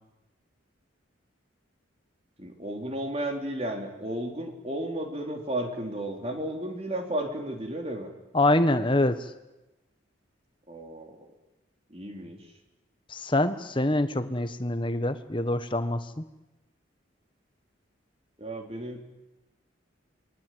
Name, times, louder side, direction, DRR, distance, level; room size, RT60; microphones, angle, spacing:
voice 1, 2.4-8.1 10.7-11.3 11.9-12.5 18.4-19.0, right 1 dB, 30° right, 3 dB, 3.8 m, -33 dB
voice 2, 8.3-9.2 13.1-16.2, left 1 dB, 25° left, 10 dB, 1.3 m, -25 dB
27.5 x 22.0 x 9.4 m, 1.0 s
head